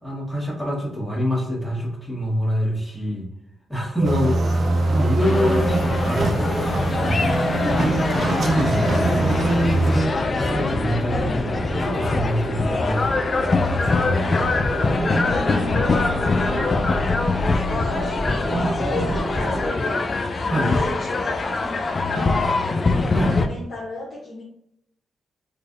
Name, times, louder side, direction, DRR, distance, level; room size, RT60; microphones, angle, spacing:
voice 1, 0.0-3.3 3.7-4.4 4.9-7.3 8.4-14.7 20.5-20.7 23.1-23.3, equal, ahead, -4 dB, 1.5 m, -26 dB
sound 1, 4.0-19.7, equal, 40° right, 1.1 m, -30 dB
sound 2, 4.0-10.0, right 2 dB, 60° right, 0.5 m, -23 dB
voice 2, 4.4-5.2 7.5-9.5 11.2-11.5 12.6-13.0 15.1-17.4 17.7-20.1 20.4-24.4, left 2 dB, 60° left, -5 dB, 0.8 m, -34 dB
sound 3, 5.2-23.5, left 3 dB, 45° left, 0.3 m, -24 dB
3.9 x 2.6 x 2.5 m, 0.74 s
cardioid pair, 60°, 0 cm